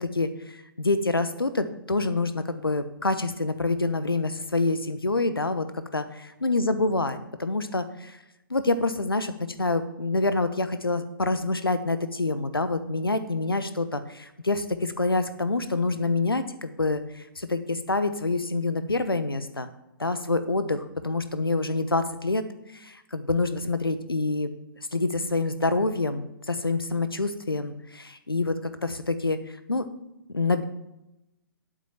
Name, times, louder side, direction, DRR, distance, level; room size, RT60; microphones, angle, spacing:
voice 1, 0.0-8.2 8.5-19.7 20.0-22.4 22.7-24.5 24.9-29.9 30.3-30.6, left 3 dB, 85° left, 11 dB, 1.0 m, -27 dB
8.2 x 6.2 x 7.1 m, 0.92 s
figure-of-eight pair, 125°, 12 cm